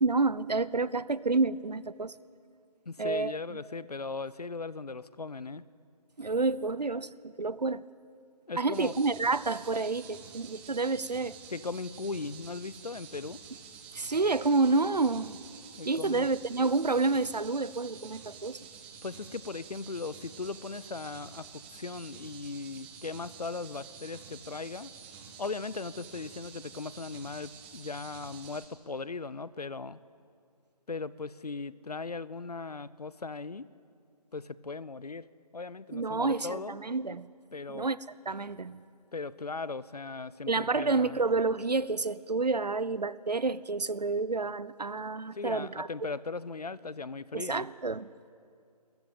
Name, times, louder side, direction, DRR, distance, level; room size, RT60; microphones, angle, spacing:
voice 1, 0.0-2.1 3.0-3.3 6.2-7.8 8.6-11.4 13.9-15.4 15.9-18.6 35.9-37.3 37.7-38.0 38.3-38.8 40.5-45.9 47.3-48.1, right 3 dB, 80° right, 18 dB, 0.8 m, -29 dB
voice 2, 2.9-5.6 8.5-9.0 11.5-13.4 15.8-16.3 19.0-30.0 30.9-33.7 34.3-35.3 35.5-36.8 37.5-37.9 39.1-41.2 45.3-47.7, left 4 dB, 70° left, 18 dB, 0.8 m, -38 dB
sound 1, 8.7-28.7, right 6 dB, 5° right, 0.8 m, -49 dB
30.0 x 14.5 x 8.8 m, 2.4 s
figure-of-eight pair, 150°, 21 cm